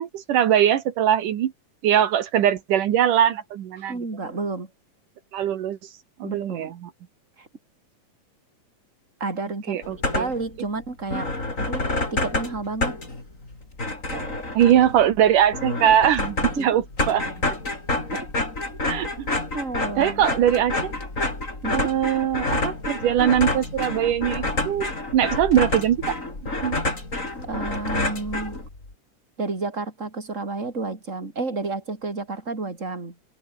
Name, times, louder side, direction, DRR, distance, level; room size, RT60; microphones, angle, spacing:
voice 1, 0.0-1.5 1.8-4.0 5.3-5.8 6.2-6.9 9.7-10.3 14.5-16.8 17.1-17.3 18.9-19.3 20.0-20.9 21.7-26.2 26.6-26.9, right 10 dB, 80° right, 3.1 m, -21 dB
voice 2, 3.9-4.7 6.2-6.7 7.4-7.5 9.2-9.8 10.1-11.3 11.6-13.0 14.1-14.5 16.6-16.8 18.1-18.3 19.5-20.2 21.6-21.9 27.4-28.6 29.4-33.1, right 3 dB, 20° right, 4.6 m, -31 dB
sound 1, 9.8-10.5 10.8-10.9 11.1-28.9, left 2 dB, 20° left, 5.4 m, -28 dB
omnidirectional pair, 3.7 m